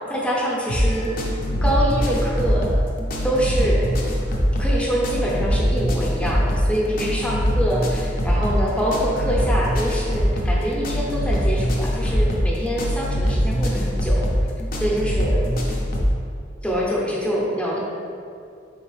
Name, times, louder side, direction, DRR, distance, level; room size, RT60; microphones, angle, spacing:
voice 1, 0.1-1.4 1.6-2.8 3.2-3.9 4.5-14.3 14.8-15.5 16.6-17.8, equal, 5° left, -5 dB, 0.6 m, -25 dB
sound 1, 0.7-16.2, equal, 50° left, 0.5 m, -22 dB
3.8 x 3.7 x 3.2 m, 2.4 s
head